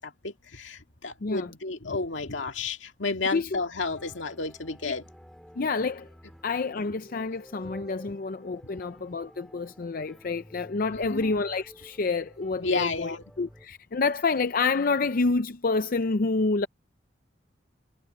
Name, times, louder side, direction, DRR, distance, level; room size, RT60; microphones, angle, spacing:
voice 1, 0.0-5.1 7.6-7.8 10.9-11.3 12.6-13.2, left 3 dB, 75° left, 2.1 m, -32 dB
sound 1, 3.9-13.7, equal, ahead, 3.4 m, -51 dB
voice 2, 5.6-6.1 6.4-16.7, left 4 dB, 50° left, 0.5 m, -28 dB
head